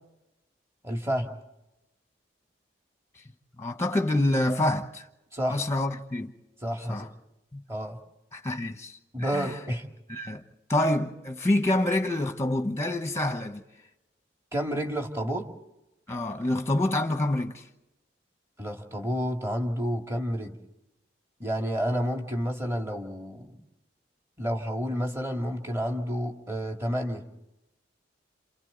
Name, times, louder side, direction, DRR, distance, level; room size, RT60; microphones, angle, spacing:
voice 1, 0.8-1.4 5.3-5.6 6.6-7.1 7.7-8.0 9.1-9.9 14.5-15.5 18.6-20.6 21.4-23.5 24.4-27.3, equal, 15° right, 2.2 m, -30 dB
voice 2, 3.6-5.1 5.5-6.3 6.9-7.1 7.5-7.6 8.3-9.5 10.1-10.4 10.7-13.6 16.1-17.6, left 1 dB, 15° left, 1.1 m, -27 dB
28.5 x 28.0 x 4.0 m
head